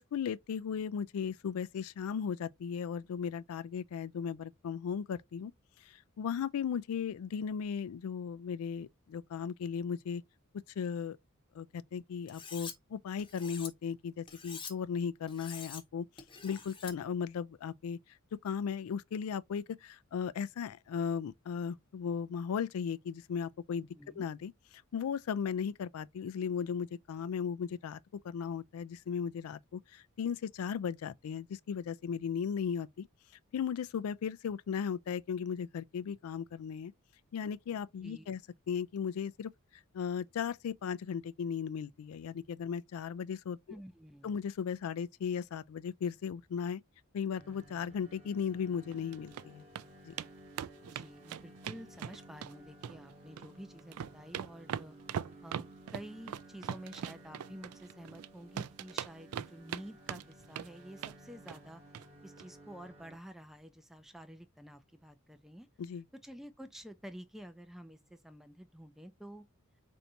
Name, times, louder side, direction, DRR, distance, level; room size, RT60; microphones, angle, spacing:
voice 1, 0.0-5.5 5.8-10.2 10.5-11.2 11.5-16.1 16.4-18.0 18.3-23.9 24.2-24.5 24.9-28.0 28.2-33.1 33.5-36.9 37.3-38.4 38.7-39.5 39.9-43.6 44.2-46.8 47.1-49.6 50.0-50.1 65.8-66.0, left 7 dB, 75° left, 0.3 m, -36 dB
Cutlery silverware, 12.3-12.7 13.2-13.7 14.3-14.7 15.3-15.8 16.2-16.9, left 5 dB, 25° left, 0.8 m, -46 dB
voice 2, 24.0-24.3 38.0-38.3 43.7-44.4 50.9-55.0 55.4-61.8 62.2-65.7 66.2-69.5, equal, ahead, 0.4 m, -50 dB
sound 1, 47.3-63.2, right 1 dB, 30° right, 0.9 m, -56 dB
sound 2, 48.9-49.4 49.7-49.9 50.2-50.3 50.6-52.5 52.8-53.5 53.8-58.3 58.6-59.8 60.1-60.7 61.0-61.2 61.5-61.7 61.9-62.1 62.4-62.5, right 9 dB, 85° right, 0.3 m, -40 dB
4.5 x 2.6 x 2.7 m
head